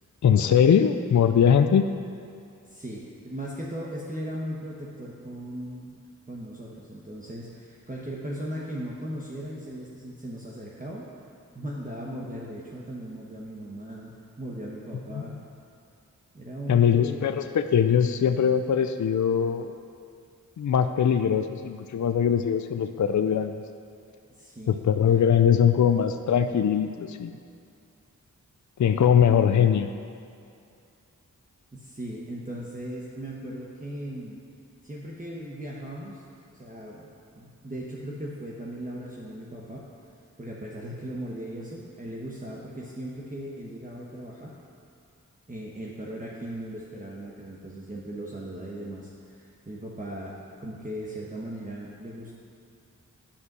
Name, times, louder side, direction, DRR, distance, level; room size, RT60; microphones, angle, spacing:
voice 1, 0.2-1.9 15.1-15.2 16.7-19.7 20.6-23.6 24.7-27.4 28.8-29.9, left 8 dB, 60° left, 8 dB, 0.5 m, -21 dB
voice 2, 2.6-11.1 11.5-15.3 16.3-17.2 24.3-24.8 25.1-25.2 31.7-34.4 34.8-36.2 36.5-37.1 37.3-39.9 40.4-44.6 45.5-52.3, right 1 dB, 25° right, -5 dB, 1.1 m, -38 dB
10.0 x 5.5 x 6.1 m, 2.4 s
wide cardioid pair, 55°, 33 cm